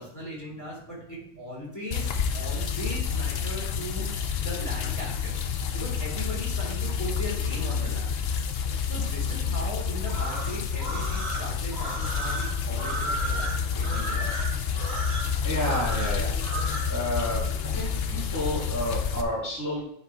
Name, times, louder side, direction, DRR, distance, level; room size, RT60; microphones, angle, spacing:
voice 1, 0.0-5.4 5.7-8.3 8.9-14.6, equal, 15° left, -4 dB, 2.9 m, -38 dB
sound 1, 1.9-19.2, left 6 dB, 60° left, 0.9 m, -29 dB
sound 2, 10.0-16.9, right 2 dB, 65° right, 2.3 m, -34 dB
voice 2, 15.4-16.3 16.9-17.4 17.7-19.8, left 1 dB, 15° right, -8 dB, 2.5 m, -30 dB
9.6 x 4.2 x 4.6 m, 0.73 s
omnidirectional pair, 1.2 m